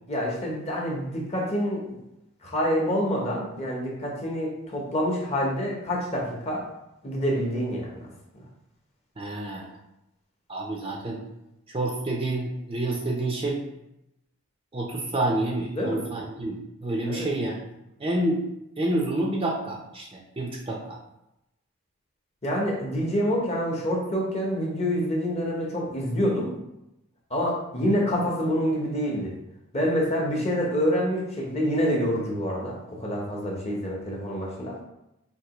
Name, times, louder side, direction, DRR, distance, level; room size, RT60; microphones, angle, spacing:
voice 1, 0.1-1.8 2.4-6.6 7.0-8.1 8.3-8.4 15.7-16.0 17.1-17.3 22.4-26.6 27.3-29.3 29.7-34.7, equal, 30° left, -2 dB, 0.8 m, -27 dB
voice 2, 9.2-9.7 10.5-11.2 11.7-13.6 14.7-17.5 18.0-18.4 18.8-20.1 20.4-20.8, right 1 dB, 25° right, -1 dB, 0.5 m, -28 dB
4.5 x 2.8 x 2.9 m, 0.88 s
head